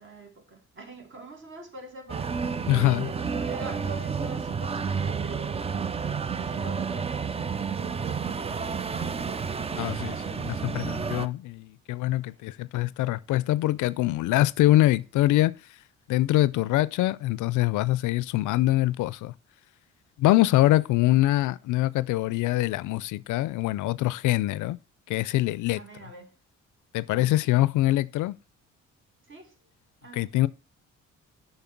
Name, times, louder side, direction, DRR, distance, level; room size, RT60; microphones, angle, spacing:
voice 1, 0.0-2.3 3.0-5.6 6.0-9.1 12.2-12.5 25.7-26.3 27.1-27.4 29.3-29.5 30.0-30.3, right 2 dB, 40° right, 2.1 m, -45 dB
sound 1, 2.1-11.3, right 6 dB, 20° right, 0.4 m, -30 dB
voice 2, 2.7-3.1 9.7-15.5 16.1-19.3 20.2-24.8 25.1-25.8 26.9-28.3 30.1-30.5, left 16 dB, 80° left, 0.4 m, -24 dB
7.1 x 5.7 x 5.8 m
cardioid pair, 90°, 30 cm